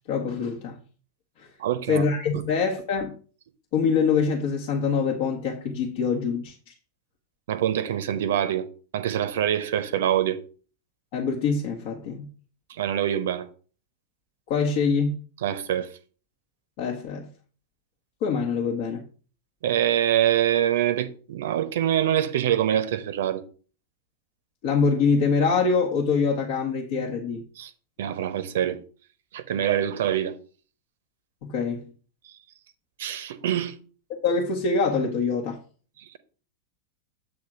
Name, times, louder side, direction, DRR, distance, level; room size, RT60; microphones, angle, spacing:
voice 1, 0.1-0.8 1.4-1.5 1.9-3.2 3.7-6.7 11.1-12.3 14.5-15.2 16.8-17.3 18.2-19.0 24.6-27.4 31.4-31.9 34.1-35.6, left 5 dB, 50° left, 1.1 m, -24 dB
voice 2, 1.6-2.0 2.3-2.4 7.5-8.7 8.9-10.4 12.7-13.5 15.4-15.9 19.6-23.4 27.6-27.7 28.0-28.8 29.3-30.4 33.0-33.7 36.0-36.2, right 10 dB, 55° right, 0.7 m, -25 dB
7.8 x 3.5 x 5.9 m
figure-of-eight pair, 90°, 0 cm